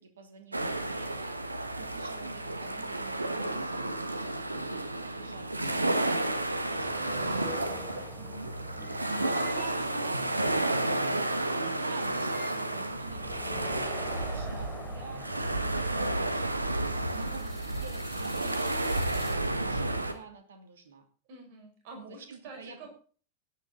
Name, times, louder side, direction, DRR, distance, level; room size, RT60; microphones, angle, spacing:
voice 1, 0.0-10.4 11.2-16.5 17.1-18.8 19.1-21.0 22.1-22.9, right 5 dB, 65° right, 6 dB, 2.7 m, -48 dB
sound 1, 0.5-20.1, right 2 dB, 85° right, 1.3 m, -31 dB
sound 2, 6.5-19.3, left 1 dB, 5° left, 3.6 m, -47 dB
voice 2, 9.1-10.9 21.3-22.9, right 1 dB, 45° right, 3 dB, 5.7 m, -47 dB
17.0 x 10.0 x 4.0 m, 0.41 s
figure-of-eight pair, 90°, 0 cm